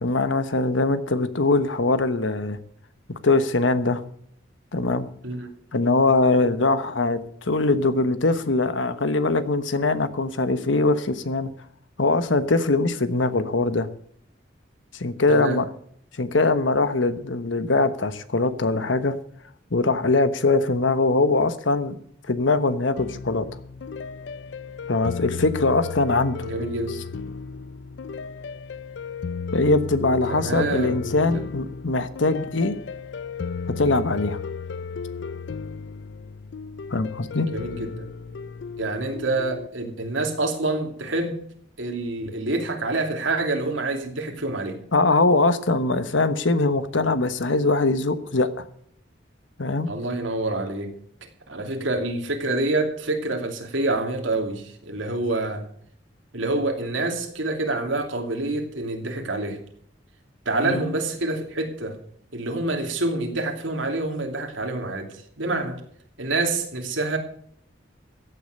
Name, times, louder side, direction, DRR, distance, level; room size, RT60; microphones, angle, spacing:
voice 1, 0.0-2.6 3.1-4.0 4.7-5.1 5.7-11.5 12.0-13.9 14.9-15.7 16.2-19.2 19.7-22.0 22.3-23.5 24.9-26.5 29.5-32.8 33.7-34.4 36.9-37.5 44.9-48.6 49.6-49.9 60.6-60.8, left 3 dB, 80° left, 11 dB, 1.2 m, -22 dB
voice 2, 15.3-15.6 26.4-27.0 30.3-31.4 37.4-38.1 38.8-41.4 41.8-44.8 49.9-50.9 51.2-55.7 56.3-59.6 60.4-62.0 62.3-65.8 66.2-67.2, right 2 dB, 85° right, 3 dB, 2.9 m, -27 dB
sound 1, 23.0-39.7, left 5 dB, 65° left, 0.4 m, -34 dB
15.0 x 8.7 x 6.6 m, 0.63 s
head